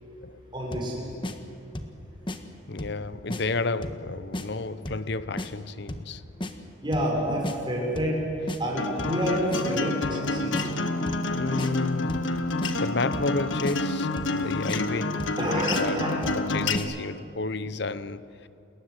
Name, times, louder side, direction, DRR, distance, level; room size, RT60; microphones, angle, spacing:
voice 1, 0.5-1.2 6.8-8.2 8.6-10.6 14.3-14.5 15.4-16.2, equal, 25° right, 6.4 m, -28 dB
sound 1, 0.7-0.9 1.2-1.4 1.7-2.0 2.3-2.4 2.8-3.0 3.3-3.4 3.8-4.0 4.3-4.5 4.8-5.1 5.4-5.5 5.9-6.1 6.4-6.5 6.9-7.1 7.4-7.6 7.9-8.2 8.5-8.6 9.0-9.2 9.5-9.6 10.0-10.2 10.5-10.7 11.1-11.3 11.6-11.7 12.1-12.3 12.6-12.7 13.1-13.3 13.6-13.8 14.2-14.4 14.7-14.8 15.2-15.4 15.7-15.8 16.2-16.4 16.7-16.9, left 1 dB, 25° left, 1.5 m, -33 dB
voice 2, 2.7-6.2 11.3-12.3 12.8-16.0 16.3-18.5, left 3 dB, 60° left, 0.9 m, -31 dB
Acoustic guitar, 8.8-16.8, left 2 dB, 80° left, 1.6 m, -28 dB
29.0 x 21.0 x 8.2 m
head